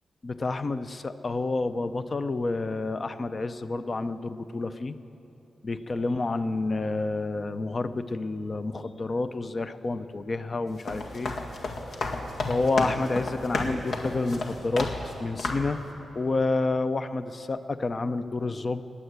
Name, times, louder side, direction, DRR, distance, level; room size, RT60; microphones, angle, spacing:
voice 1, 0.2-4.9 5.6-11.3 12.5-14.9 15.2-15.8 16.1-18.8, left 3 dB, 35° left, 11 dB, 0.6 m, -29 dB
sound 1, 10.7-15.1 15.4-15.8, left 2 dB, 75° left, 1.8 m, -32 dB
19.5 x 9.1 x 8.1 m, 2.8 s
wide cardioid pair, 125°, 0 cm